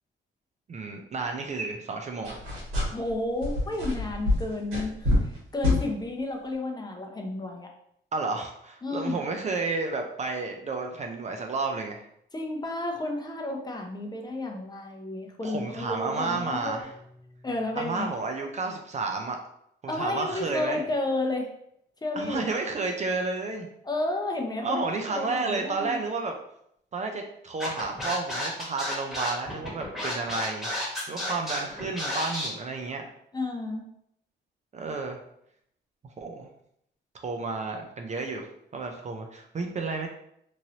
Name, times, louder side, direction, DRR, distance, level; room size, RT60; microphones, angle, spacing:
voice 1, 0.7-2.4 8.1-12.1 15.4-16.9 17.8-19.4 19.8-20.8 22.2-23.7 24.6-26.4 26.9-33.1 34.7-35.2 36.2-36.5 37.2-40.1, right 3 dB, 35° right, 4 dB, 0.4 m, -31 dB
sound 1, 2.2-3.1 3.4-5.4 5.6-5.8, left 2 dB, 85° right, 1.4 m, -26 dB
voice 2, 2.9-7.7 8.8-9.2 12.3-16.9 17.4-18.1 19.9-21.5 22.0-22.5 23.8-24.8 25.1-26.0 33.3-33.9, left 2 dB, 20° left, 2 dB, 0.6 m, -31 dB
sound 2, 16.1-18.7, equal, 55° right, 1.2 m, -53 dB
Scratching (performance technique), 27.6-32.5, left 1 dB, ahead, 1.3 m, -31 dB
3.0 x 2.6 x 2.8 m, 0.73 s
cardioid pair, 90°, 20 cm